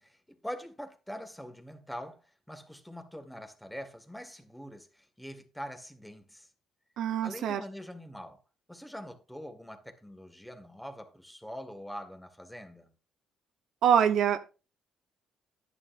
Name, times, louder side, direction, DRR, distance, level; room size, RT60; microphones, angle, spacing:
voice 1, 0.0-6.5 7.2-8.4 8.7-12.9, equal, 5° left, 1.8 m, -44 dB
voice 2, 7.0-7.6 13.8-14.5, right 8 dB, 70° right, 0.9 m, -25 dB
11.0 x 9.8 x 2.6 m
cardioid pair, 85°, 0 cm